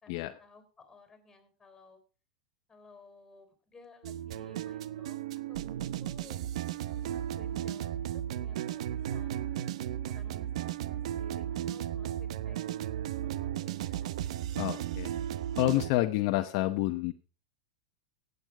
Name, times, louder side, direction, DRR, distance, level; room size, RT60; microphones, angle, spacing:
voice 1, 0.0-2.0 2.7-5.2 5.5-6.4 6.7-9.6 10.0-14.2, left 3 dB, 10° left, 8 dB, 4.0 m, -57 dB
sound 1, 4.0-15.9, right 11 dB, 70° right, 0.7 m, -35 dB
voice 2, 14.6-15.1 15.6-17.1, left 16 dB, 55° left, 7 dB, 0.9 m, -28 dB
16.5 x 8.2 x 4.8 m, 0.37 s
hypercardioid pair, 115°, 4 cm